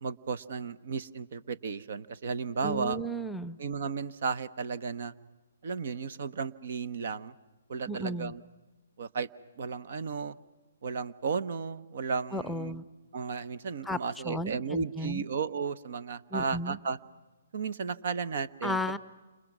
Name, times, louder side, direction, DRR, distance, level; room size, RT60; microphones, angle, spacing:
voice 1, 0.0-3.0 3.6-5.1 5.6-7.3 7.7-8.4 9.0-9.3 9.6-10.4 10.8-12.8 13.1-17.0 17.5-19.0, right 5 dB, 60° right, 15 dB, 1.0 m, -34 dB
voice 2, 2.6-3.6 7.9-8.3 12.3-12.8 13.8-14.0 14.2-15.2 16.3-16.8 18.6-19.0, equal, 5° left, 15 dB, 0.7 m, -34 dB
29.5 x 28.0 x 6.1 m, 1.2 s
figure-of-eight pair, 135°, 0 cm